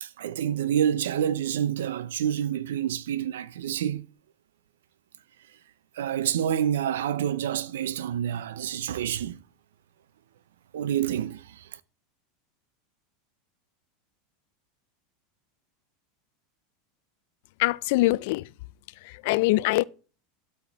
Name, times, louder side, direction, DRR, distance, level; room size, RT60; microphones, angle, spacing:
voice 1, 0.0-4.1 5.9-9.4 10.7-11.8, right 10 dB, 85° right, 0.5 m, -28 dB
voice 2, 17.6-18.4 19.0-19.8, left 20 dB, 65° left, 0.3 m, -23 dB
12.5 x 4.2 x 3.5 m
supercardioid pair, 120°, 0 cm